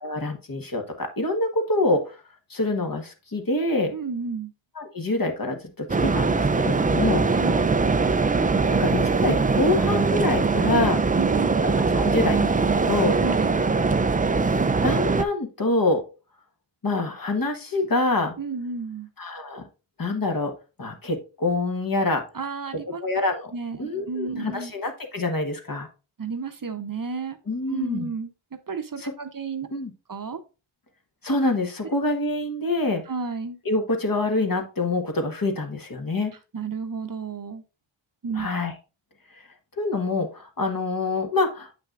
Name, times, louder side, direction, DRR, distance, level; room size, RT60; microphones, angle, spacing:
voice 1, 0.0-2.2 2.5-3.9 4.8-7.3 8.7-11.0 11.6-13.2 14.8-16.0 16.8-18.3 19.2-19.6 20.0-20.5 20.8-22.2 23.0-23.5 23.8-25.9 27.5-28.1 29.0-29.1 29.7-29.9 31.2-33.0 33.6-36.3 38.3-38.7 39.8-41.7, left 2 dB, 45° left, 1.2 m, -26 dB
voice 2, 3.9-4.5 7.3-7.9 11.2-11.6 13.2-13.7 18.4-19.1 22.3-23.0 23.5-24.7 26.2-27.4 27.7-28.3 28.7-29.7 30.1-30.4 33.1-33.6 36.5-37.6 38.2-38.5, right 5 dB, 45° right, 0.7 m, -32 dB
sound 1, 5.9-15.2, right 4 dB, 20° right, 0.3 m, -22 dB
7.7 x 5.8 x 2.4 m
wide cardioid pair, 70°, 48 cm